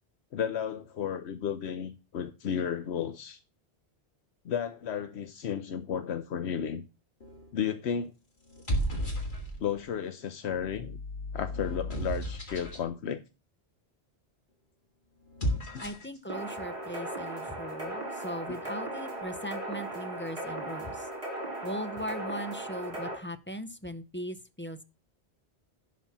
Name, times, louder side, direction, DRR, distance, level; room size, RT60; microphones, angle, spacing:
voice 1, 0.3-3.4 4.4-6.8 7.5-8.1 9.6-11.0 11.3-13.2 15.7-15.8 18.5-18.6, left 8 dB, 85° left, 1.0 m, -33 dB
sound 1, 7.2-7.6 8.4-9.8 10.5-12.9 15.2-16.2, equal, 50° left, 2.3 m, -34 dB
voice 2, 15.8-21.1 21.6-24.8, equal, 15° left, 0.5 m, -39 dB
sound 2, 16.3-23.2, right 1 dB, 30° right, 3.8 m, -37 dB
11.5 x 4.2 x 7.2 m
omnidirectional pair, 1.1 m